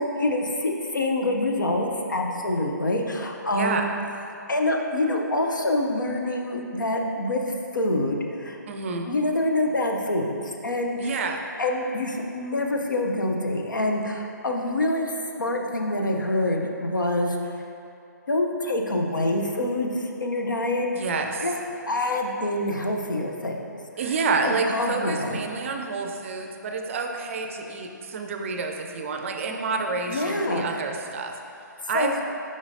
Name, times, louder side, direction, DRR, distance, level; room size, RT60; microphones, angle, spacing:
voice 1, 0.0-3.9 4.5-7.4 7.7-8.6 9.0-11.2 11.6-17.6 18.3-21.1 21.4-21.5 21.9-23.7 24.0-24.1 24.5-25.4 30.1-30.8 31.9-32.1, left 1 dB, 80° left, 1 dB, 0.7 m, -26 dB
voice 2, 3.5-3.9 8.7-9.1 11.0-11.5 20.9-21.5 24.0-31.4 31.9-32.1, right 4 dB, 40° right, 4 dB, 0.5 m, -28 dB
6.9 x 5.2 x 2.7 m, 2.6 s
figure-of-eight pair, 135°, 10 cm